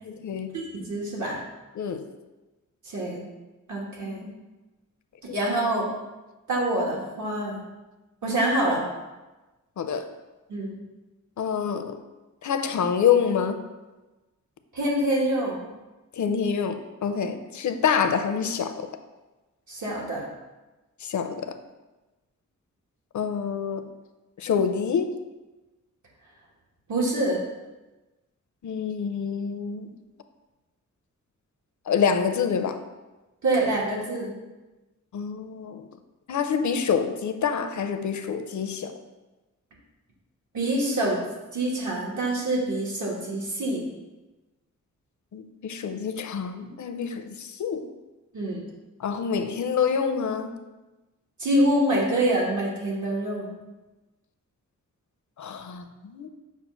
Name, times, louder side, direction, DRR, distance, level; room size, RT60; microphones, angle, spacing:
voice 1, 0.0-0.6 1.7-2.1 5.3-5.4 9.8-10.1 11.4-12.0 12.4-13.6 16.1-18.9 21.0-21.6 23.1-23.9 24.4-25.1 28.6-29.9 31.9-32.8 35.1-35.8 36.3-39.0 45.3-47.9 49.0-50.6 55.4-56.3, left 7 dB, 70° left, 8 dB, 0.5 m, -27 dB
voice 2, 0.7-1.4 2.9-3.3 3.7-4.3 5.3-5.9 6.5-7.6 8.2-8.8 10.5-10.8 14.7-15.6 19.7-20.3 26.9-27.4 33.4-34.3 40.5-41.2 41.5-43.8 48.3-48.7 51.4-53.5, right 1 dB, 75° right, -3 dB, 1.5 m, -25 dB
7.0 x 2.4 x 5.5 m, 1.1 s
wide cardioid pair, 130°, 30 cm